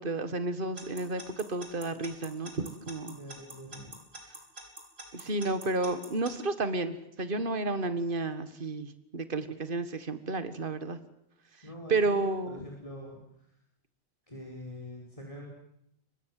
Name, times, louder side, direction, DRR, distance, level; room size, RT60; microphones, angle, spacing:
voice 1, 0.0-3.2 5.1-11.0 11.9-12.6, right 3 dB, 50° right, 11 dB, 1.9 m, -31 dB
Alarm / Clock, 0.8-6.3, right 2 dB, 65° right, 5.9 m, -44 dB
voice 2, 3.1-3.9 11.6-13.5 14.3-15.5, left 1 dB, 30° left, -1 dB, 5.4 m, -44 dB
30.0 x 24.0 x 7.7 m, 0.75 s
omnidirectional pair, 1.1 m